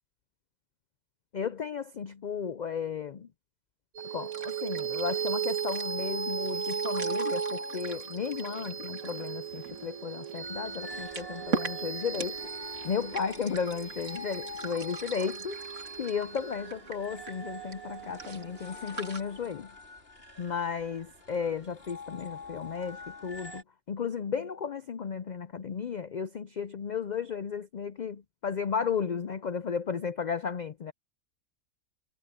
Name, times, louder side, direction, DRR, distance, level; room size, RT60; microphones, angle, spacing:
voice 1, 1.3-3.3 4.0-12.4 12.8-15.6 16.0-19.8 20.4-30.9, left 6 dB, 75° left, 0.4 m, -34 dB
sound 1, 4.0-19.2, right 5 dB, 60° right, 2.8 m, -42 dB
sound 2, 4.0-18.7, right 7 dB, 80° right, 1.8 m, -36 dB
sound 3, 10.4-23.6, left 1 dB, 45° left, 5.0 m, -47 dB
omnidirectional pair, 1.4 m